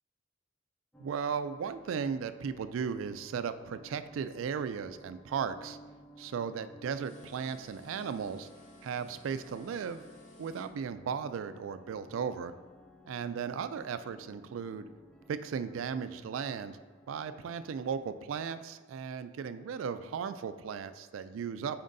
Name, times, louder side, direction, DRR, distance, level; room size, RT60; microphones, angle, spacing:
sound 1, 0.9-18.2, equal, 5° left, 0.4 m, -57 dB
voice 1, 1.0-5.8 6.2-8.5 8.8-10.0 10.4-12.5 13.1-14.9 15.3-16.8 17.1-21.8, right 6 dB, 85° right, 11 dB, 0.3 m, -36 dB
sound 2, 7.0-10.7, left 1 dB, 40° left, 0.7 m, -57 dB
9.2 x 4.3 x 2.6 m, 1.4 s
head